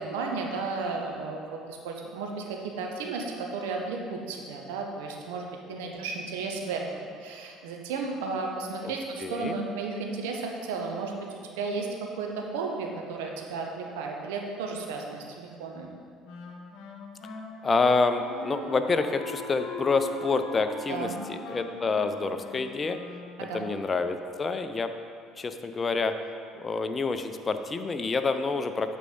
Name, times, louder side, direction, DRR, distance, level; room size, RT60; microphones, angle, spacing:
voice 1, 0.0-15.9 20.9-21.2 23.4-23.7, right 4 dB, 70° right, 1 dB, 0.9 m, -34 dB
voice 2, 9.2-9.6 17.6-23.0 23.4-24.9 25.4-26.1 26.5-29.0, left 4 dB, 30° left, 8 dB, 0.5 m, -28 dB
Wind instrument woodwind instrument, 16.2-23.6, left 3 dB, 65° left, 0.9 m, -41 dB
8.2 x 4.6 x 5.2 m, 2.3 s
hypercardioid pair, 60°, 0 cm